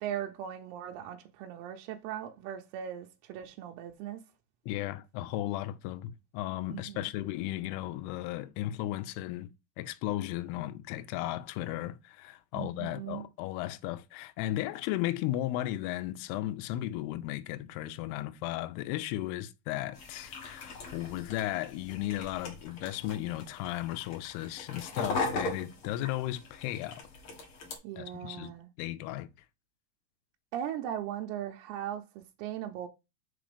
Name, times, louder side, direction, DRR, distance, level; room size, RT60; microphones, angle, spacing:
voice 1, 0.0-4.2 6.7-7.1 12.5-13.2 27.8-28.7 30.5-32.9, right 10 dB, 80° right, 2.5 m, -38 dB
voice 2, 4.7-9.5 9.8-27.0 28.0-28.5 28.8-29.3, left 14 dB, 80° left, 2.5 m, -35 dB
sound 1, 19.9-27.7, left 3 dB, 50° left, 1.6 m, -39 dB
5.9 x 3.9 x 5.0 m
omnidirectional pair, 4.8 m